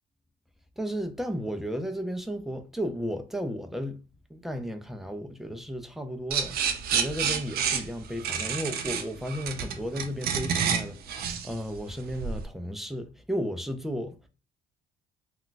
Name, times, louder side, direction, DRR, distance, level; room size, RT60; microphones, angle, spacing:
voice 1, 0.8-4.0 4.3-14.2, equal, ahead, 0.4 m, -34 dB
sound 1, 6.3-12.4, right 7 dB, 65° right, 0.5 m, -29 dB
2.3 x 2.2 x 3.8 m
cardioid pair, 110°, 17 cm